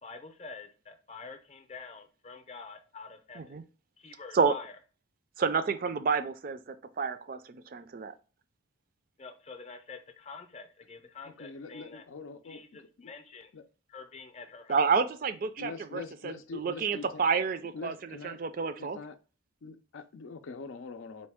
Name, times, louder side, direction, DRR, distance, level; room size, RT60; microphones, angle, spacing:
voice 1, 0.0-3.4 4.0-4.8 9.2-12.0 12.4-13.5 13.9-14.9, left 4 dB, 35° left, 0.6 m, -47 dB
voice 2, 5.4-8.1 14.7-19.0, right 5 dB, 45° right, 0.3 m, -30 dB
voice 3, 11.2-13.1 13.5-13.6 15.6-17.4 17.7-18.4 18.8-19.2 19.6-21.3, left 4 dB, 90° left, 0.5 m, -44 dB
4.2 x 3.1 x 3.5 m
head